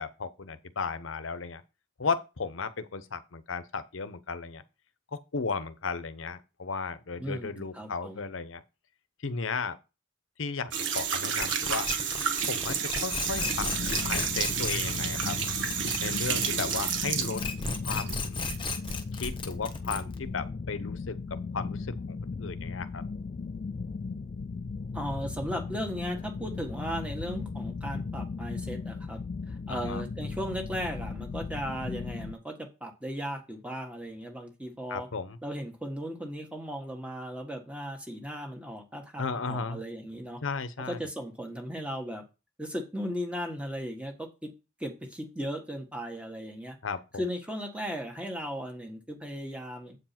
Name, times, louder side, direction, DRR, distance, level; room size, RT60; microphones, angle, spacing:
voice 1, 0.0-1.6 2.0-4.6 5.1-8.6 9.2-9.8 10.4-11.9 12.4-13.7 14.0-15.4 16.0-17.4 17.8-18.3 19.1-21.2 21.5-23.0 29.7-30.0 34.9-35.4 39.2-39.8 40.4-41.0 46.8-47.2, left 4 dB, 80° left, 0.8 m, -35 dB
voice 2, 7.2-8.2 24.9-35.1 35.4-40.4 40.8-42.2 42.6-44.5 44.8-46.8 47.2-50.0, equal, 5° right, 1.5 m, -36 dB
sound 1, 10.7-18.2 18.5-19.3, right 7 dB, 65° right, 1.4 m, -31 dB
sound 2, 11.4-16.9 17.2-20.3, left 4 dB, 25° left, 1.1 m, -35 dB
sound 3, 13.2-32.3, left 4 dB, 40° left, 0.3 m, -37 dB
8.3 x 4.7 x 5.9 m
head